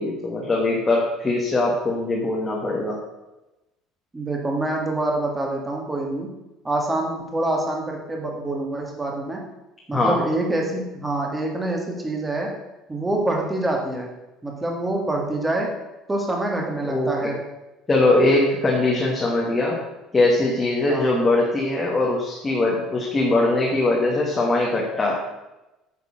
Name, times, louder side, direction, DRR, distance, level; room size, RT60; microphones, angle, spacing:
voice 1, 0.0-3.0 9.9-10.2 16.8-17.3 17.9-19.8 20.1-25.2, left 2 dB, 15° left, -3 dB, 1.5 m, -21 dB
voice 2, 4.1-6.3 6.6-9.4 9.9-12.5 12.9-14.1 14.4-15.7 16.1-17.4 20.9-21.1, right 2 dB, 10° right, 0 dB, 1.8 m, -26 dB
9.8 x 6.6 x 6.3 m, 1.0 s
cardioid pair, 175°, 0 cm